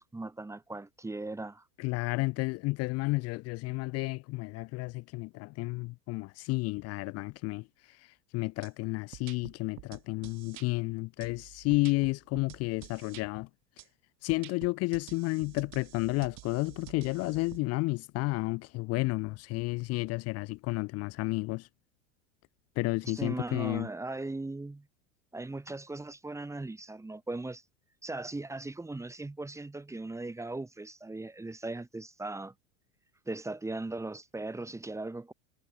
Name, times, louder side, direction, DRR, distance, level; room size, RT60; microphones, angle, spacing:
voice 1, 0.0-1.6 23.0-24.9 25.3-27.6 28.0-32.5 33.3-35.3, right 2 dB, 10° right, 1.3 m, -38 dB
voice 2, 1.8-13.5 14.2-21.7 22.8-23.9, left 23 dB, 45° left, 0.6 m, -32 dB
sound 1, 8.6-8.7 9.1-10.7 11.2-13.2 13.8-13.9 14.3-17.6, right 21 dB, 50° right, 2.2 m, -49 dB
hypercardioid pair, 85°, 37 cm